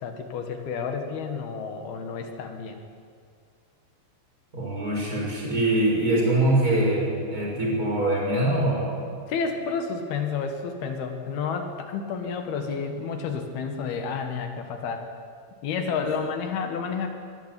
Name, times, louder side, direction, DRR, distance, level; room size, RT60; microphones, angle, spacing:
voice 1, 0.0-2.8 9.3-15.1 15.6-17.1, left 5 dB, 85° left, 5 dB, 3.8 m, -30 dB
voice 2, 4.5-9.0, right 1 dB, 20° right, -2 dB, 6.5 m, -23 dB
23.5 x 16.0 x 10.0 m, 2.2 s
omnidirectional pair, 4.4 m